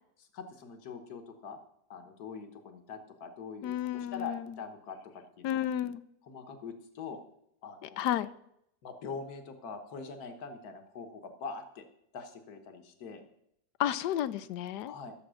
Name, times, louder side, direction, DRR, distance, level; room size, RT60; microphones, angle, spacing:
voice 1, 0.2-1.6 1.9-5.6 6.3-7.2 7.6-8.0 8.8-11.8 12.1-13.2 14.8-15.1, left 5 dB, 65° left, 7 dB, 1.7 m, -43 dB
voice 2, 3.6-4.6 5.4-6.0 7.8-8.3 13.8-14.9, left 11 dB, 85° left, 16 dB, 1.2 m, -32 dB
12.5 x 7.2 x 6.3 m, 0.76 s
omnidirectional pair, 1.8 m